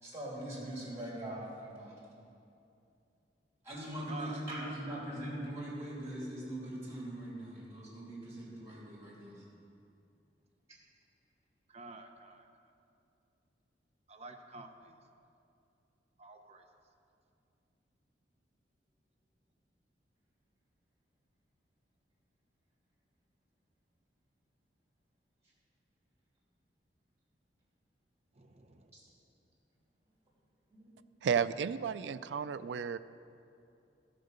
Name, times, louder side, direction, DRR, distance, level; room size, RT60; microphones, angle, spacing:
voice 1, 0.0-2.0 3.6-9.4 30.7-30.9, right 1 dB, 15° right, -6 dB, 3.0 m, -41 dB
voice 2, 4.1-4.8 11.7-12.7 14.1-14.9 16.2-16.6 28.3-28.9, right 2 dB, 40° right, 5 dB, 0.8 m, -49 dB
voice 3, 31.2-33.0, right 7 dB, 85° right, 13 dB, 0.4 m, -32 dB
14.5 x 5.1 x 6.6 m, 2.6 s
head